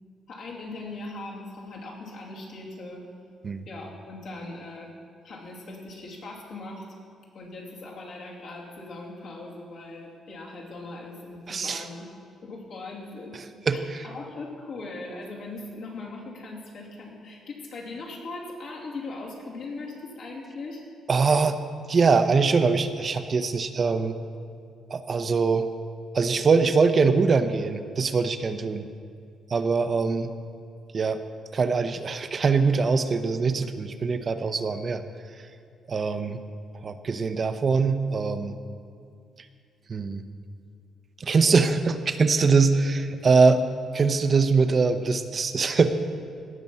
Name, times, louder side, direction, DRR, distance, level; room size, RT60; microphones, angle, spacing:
voice 1, 0.3-3.1 3.7-4.9 5.2-6.8 7.3-12.1 12.4-13.4 13.7-20.8, left 2 dB, 70° left, -4 dB, 2.7 m, -39 dB
voice 2, 11.5-11.8 13.7-13.8 21.1-21.6 21.9-24.2 24.9-25.7 26.1-28.8 29.5-30.3 30.9-31.2 31.5-35.0 35.9-36.4 36.8-38.6 39.9-40.2 41.2-43.6 43.9-45.9, right 4 dB, 40° right, 9 dB, 0.7 m, -22 dB
17.5 x 6.1 x 5.5 m, 2.3 s
cardioid pair, 90°, 0 cm